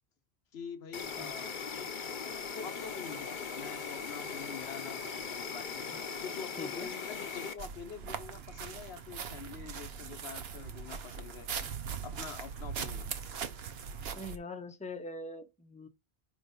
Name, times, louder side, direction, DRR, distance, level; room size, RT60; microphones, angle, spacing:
voice 1, 0.5-1.9 2.5-5.9 6.2-11.5 12.0-13.1, left 6 dB, 85° left, 1.1 m, -45 dB
Insect, 0.9-7.5, left 5 dB, 55° left, 0.9 m, -39 dB
voice 2, 6.6-6.9 14.2-15.9, left 2 dB, 10° left, 0.7 m, -43 dB
sound 1, 7.6-14.4, right 6 dB, 75° right, 1.0 m, -40 dB
5.0 x 3.7 x 5.3 m
omnidirectional pair, 1.0 m